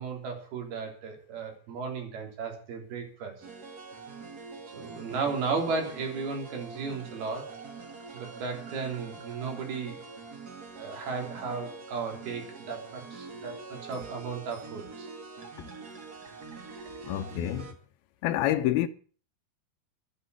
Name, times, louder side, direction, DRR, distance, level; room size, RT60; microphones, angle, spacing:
voice 1, 0.0-3.3 4.7-7.5 8.1-10.0 10.8-15.1, right 4 dB, 85° right, 5.4 m, -35 dB
sound 1, 3.4-17.7, right 4 dB, 35° right, 1.6 m, -44 dB
voice 2, 17.0-17.7 18.2-18.9, left 13 dB, 85° left, 2.7 m, -27 dB
12.0 x 9.8 x 8.1 m
omnidirectional pair, 4.3 m